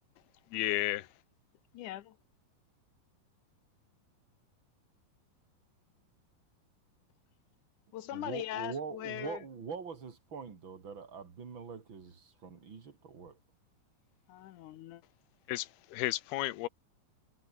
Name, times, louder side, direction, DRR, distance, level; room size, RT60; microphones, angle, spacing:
voice 1, 0.5-1.1 15.5-16.7, left 17 dB, 90° left, 3.0 m, -33 dB
voice 2, 1.7-2.2 7.9-9.4 14.3-15.0, left 13 dB, 70° left, 2.0 m, -40 dB
voice 3, 8.1-13.4, right 5 dB, 35° right, 3.0 m, -43 dB
omnidirectional pair, 4.4 m